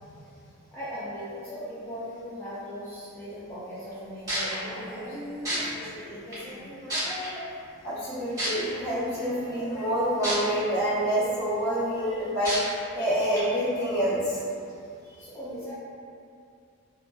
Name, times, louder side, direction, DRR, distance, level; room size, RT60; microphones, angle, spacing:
voice 1, 0.7-5.2 5.5-6.7 15.2-15.7, equal, 10° left, -12 dB, 0.3 m, -39 dB
sound 1, 3.9-4.0 4.3-4.5 5.5-5.6 6.3-6.4 6.9-7.3 8.4-8.5 10.2-10.3 10.9-11.0 12.5-12.6 13.3-13.4, right 1 dB, 15° right, 1.1 m, -28 dB
sound 2, 4.6-13.0 14.0-14.1, equal, 40° right, 0.7 m, -42 dB
voice 2, 7.8-12.5 12.9-14.4, equal, 50° left, -12 dB, 0.9 m, -27 dB
2.7 x 2.2 x 2.2 m, 2.4 s
head